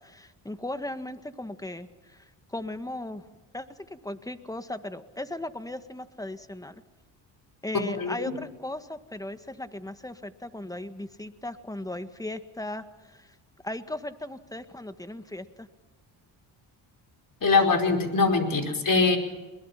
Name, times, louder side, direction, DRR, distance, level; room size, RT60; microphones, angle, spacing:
voice 1, 0.0-1.9 2.5-3.2 3.5-3.7 3.9-6.7 7.6-12.8 13.6-15.7, left 1 dB, 10° left, 10 dB, 1.8 m, -37 dB
voice 2, 7.7-8.4 17.4-19.2, left 4 dB, 45° left, 6 dB, 5.1 m, -23 dB
22.0 x 22.0 x 5.9 m, 1.2 s
supercardioid pair, 65°, 47 cm